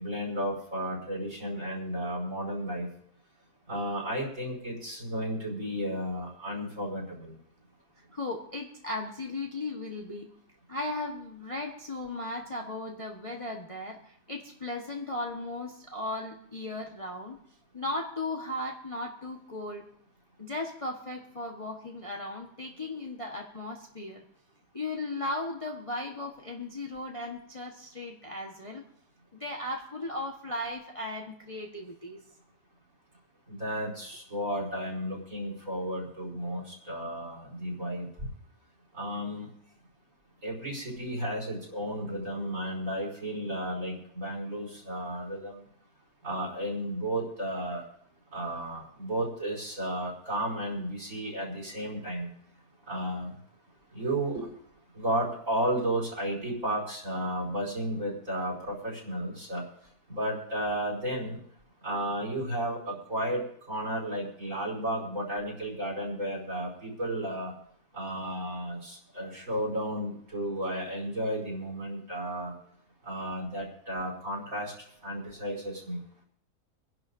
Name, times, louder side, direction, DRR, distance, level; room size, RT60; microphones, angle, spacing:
voice 1, 0.0-2.9 3.7-7.3 33.5-38.1 39.0-39.5 40.4-45.6 46.2-47.8 48.3-52.3 52.9-53.3 53.9-54.5 54.9-59.6 60.1-61.4 61.8-63.4 63.7-67.5 67.9-72.5 73.1-74.7 75.0-76.0, right 1 dB, 50° right, -1 dB, 5.0 m, -33 dB
voice 2, 8.1-10.3 10.7-17.4 17.7-19.8 20.4-24.2 24.7-28.8 29.3-32.2, left 2 dB, 20° left, 0 dB, 1.2 m, -36 dB
26.0 x 11.0 x 2.6 m, 0.64 s
omnidirectional pair, 1.7 m